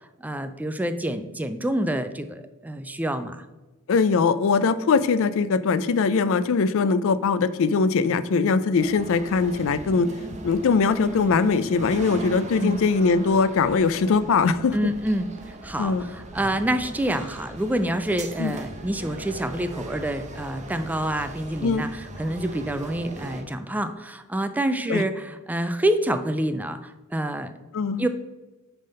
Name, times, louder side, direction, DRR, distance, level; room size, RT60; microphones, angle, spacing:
voice 1, 0.2-3.4 12.6-12.8 14.7-27.5 28.0-28.1, right 1 dB, 5° right, 10 dB, 0.3 m, -27 dB
voice 2, 3.9-10.1 10.4-14.9 15.8-16.0 18.4-18.5 21.6-21.8 24.9-25.0 27.7-28.1, left 4 dB, 65° left, 15 dB, 0.4 m, -21 dB
sound 1, 8.8-23.4, right 1 dB, 35° right, 0.9 m, -39 dB
9.0 x 3.5 x 5.4 m, 1.1 s
head